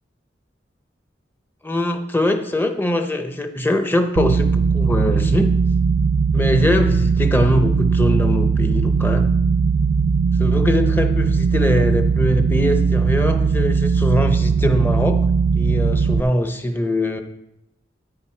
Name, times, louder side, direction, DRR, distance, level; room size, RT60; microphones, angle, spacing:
voice 1, 1.6-5.5 6.3-9.3 10.4-15.2 15.5-17.2, left 1 dB, 10° left, 7 dB, 0.7 m, -22 dB
sound 1, 4.2-16.2, right 5 dB, 75° right, 0.3 m, -18 dB
9.7 x 8.7 x 4.4 m, 0.85 s
head